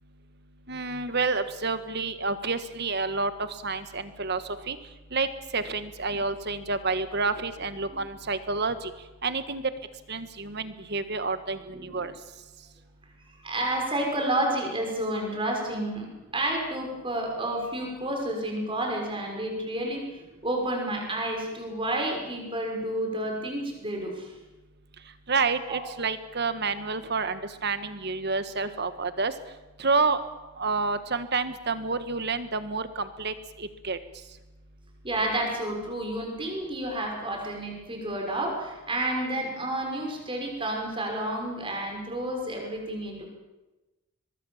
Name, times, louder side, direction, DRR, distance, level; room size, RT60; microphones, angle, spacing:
voice 1, 0.7-4.8 5.1-5.3 5.5-8.9 9.2-9.6 10.1-12.1 25.3-29.3 29.8-30.2 30.6-34.0, right 4 dB, 50° right, 11 dB, 1.5 m, -29 dB
voice 2, 11.7-12.1 13.4-16.1 16.3-20.1 20.4-24.3 25.7-25.8 35.0-43.3, right 1 dB, 25° right, 1 dB, 6.0 m, -30 dB
23.5 x 22.0 x 7.3 m, 1.1 s
head